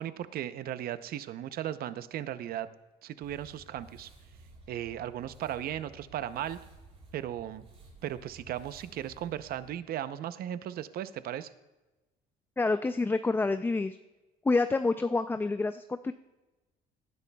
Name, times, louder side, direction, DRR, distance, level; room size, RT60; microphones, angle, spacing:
voice 1, 0.0-2.7 3.0-4.1 4.7-6.6 7.1-7.6 8.0-11.5, right 11 dB, 65° right, 13 dB, 0.7 m, -36 dB
sound 1, 3.2-9.7, right 2 dB, 40° right, 4.0 m, -54 dB
voice 2, 12.6-14.0 14.5-16.1, left 3 dB, 10° left, 10 dB, 0.4 m, -28 dB
18.5 x 10.5 x 2.3 m, 1.1 s
cardioid pair, 110°, 17 cm